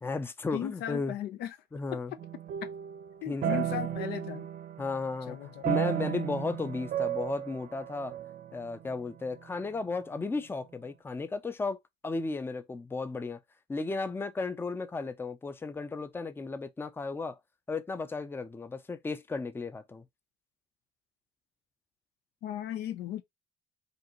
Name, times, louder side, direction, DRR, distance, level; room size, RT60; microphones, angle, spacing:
voice 1, 0.0-1.1 1.7-2.1 3.3-3.8 4.8-5.4 5.6-8.1 8.5-11.8 12.0-13.4 13.7-17.4 17.7-20.0, left 3 dB, 15° left, 0.5 m, -34 dB
voice 2, 0.5-1.6 1.9-2.2 2.6-2.7 3.2-4.5 5.3-5.7 6.5-6.6 22.4-23.2, left 11 dB, 80° left, 0.6 m, -37 dB
sound 1, 2.2-5.2 5.6-9.5, right 11 dB, 55° right, 0.8 m, -34 dB
5.2 x 2.5 x 2.9 m
cardioid pair, 110°, 17 cm